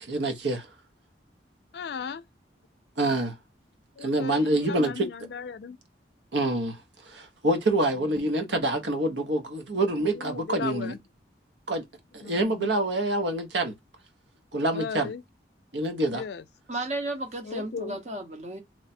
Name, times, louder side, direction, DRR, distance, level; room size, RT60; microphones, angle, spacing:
voice 1, 0.1-0.7 3.0-3.3 4.0-5.1 6.3-6.8 7.1-10.9 11.7-11.8 12.1-13.7 14.5-15.1 15.7-16.2, right 1 dB, 80° right, 0.9 m, -26 dB
voice 2, 1.7-2.2 4.0-5.8 8.0-8.6 9.9-11.0 12.2-12.7 14.7-15.2 16.1-16.4 17.4-18.0, left 5 dB, 70° left, 0.4 m, -37 dB
voice 3, 16.7-18.6, right 1 dB, 40° right, 0.8 m, -33 dB
3.1 x 2.2 x 4.1 m
head